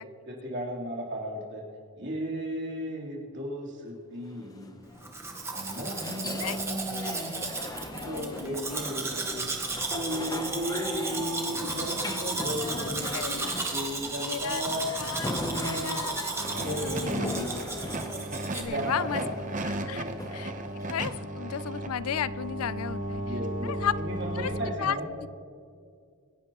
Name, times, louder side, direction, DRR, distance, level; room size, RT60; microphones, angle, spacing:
voice 1, 0.2-1.6 1.9-4.9 5.5-7.6 8.0-9.4 9.9-13.2 13.7-14.9 15.2-16.0 16.6-17.6 18.6-19.3 19.8-20.2 23.1-25.1, equal, 55° right, -3 dB, 3.3 m, -35 dB
sound 1, 4.3-21.3, left 1 dB, 15° left, 0.7 m, -40 dB
Domestic sounds home sounds, 5.0-18.6, right 3 dB, 10° right, 1.2 m, -34 dB
voice 2, 6.1-7.4 8.0-8.8 11.2-11.6 12.4-13.5 14.2-14.7 15.0-15.3 15.6-16.3 16.7-17.6 18.5-19.2 19.6-20.5 20.9-23.2 23.6-24.0 24.3-25.0, left 8 dB, 85° left, 17 dB, 0.4 m, -35 dB
sound 2, 16.4-24.8, right 1 dB, 35° right, 0.8 m, -35 dB
26.0 x 11.5 x 3.0 m, 2.3 s
head